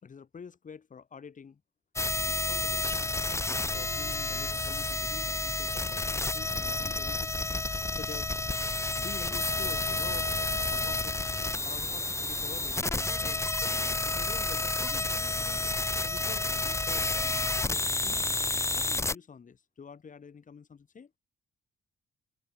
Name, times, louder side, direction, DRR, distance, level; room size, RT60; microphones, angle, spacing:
voice 1, 0.0-1.6 2.2-3.1 3.7-7.4 7.9-8.3 9.0-10.3 10.7-11.2 11.6-13.4 14.0-15.2 16.0-17.2 17.6-18.4 18.7-21.1, left 6 dB, 40° left, 4.0 m, -47 dB
sound 1, 2.0-19.2, left 2 dB, 15° left, 1.2 m, -30 dB
cardioid pair, 90°, 20 cm